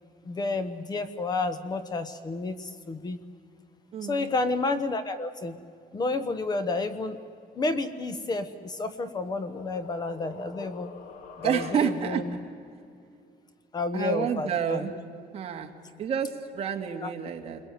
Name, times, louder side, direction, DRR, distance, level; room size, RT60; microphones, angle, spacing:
voice 1, 0.2-3.2 4.0-5.6 5.9-7.2 7.6-10.9 11.4-12.4 13.7-14.9 17.0-17.1, left 3 dB, 25° left, 11 dB, 1.0 m, -30 dB
voice 2, 3.9-4.3 11.4-12.2 13.9-14.9 15.3-15.7 16.0-17.6, right 8 dB, 40° right, 3 dB, 2.1 m, -29 dB
sound 1, 8.5-12.2, left 6 dB, 55° left, 1.8 m, -46 dB
28.5 x 22.0 x 9.2 m, 2.4 s
cardioid pair, 175°, 17 cm